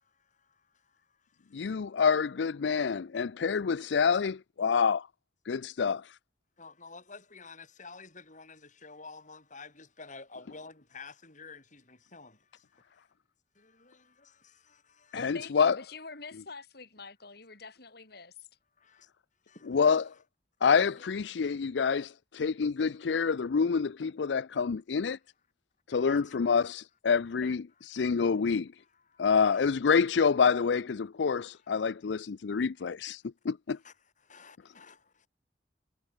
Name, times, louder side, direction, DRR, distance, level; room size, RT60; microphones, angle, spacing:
voice 1, 1.5-5.1 5.5-6.2 15.1-15.8 19.7-20.1 20.6-25.2 25.9-28.7 29.2-33.8, left 5 dB, 75° left, 0.5 m, -27 dB
voice 2, 6.6-12.3 19.7-19.8 21.0-21.1 26.1-26.4 27.4-27.5 29.2-29.7 33.8-33.9 34.3-35.0, left 4 dB, 45° left, 6.8 m, -49 dB
voice 3, 15.1-18.3, left 4 dB, 60° left, 5.9 m, -45 dB
head